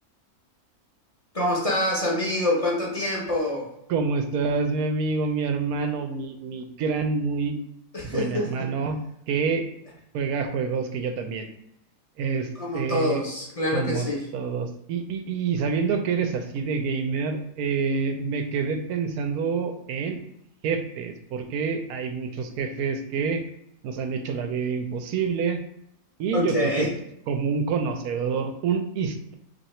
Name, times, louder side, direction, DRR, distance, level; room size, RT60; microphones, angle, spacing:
voice 1, 1.3-3.7 7.9-8.7 12.6-14.3 26.3-26.9, left 1 dB, 30° left, -4 dB, 0.7 m, -26 dB
voice 2, 3.9-7.6 8.0-9.0 9.3-9.6 10.1-11.5 12.2-13.2 13.7-14.1 14.3-20.2 20.6-23.4 23.8-25.6 26.2-26.9 27.3-29.3, right 5 dB, 75° right, 6 dB, 1.1 m, -27 dB
2.9 x 2.8 x 4.2 m, 0.74 s
omnidirectional pair, 1.6 m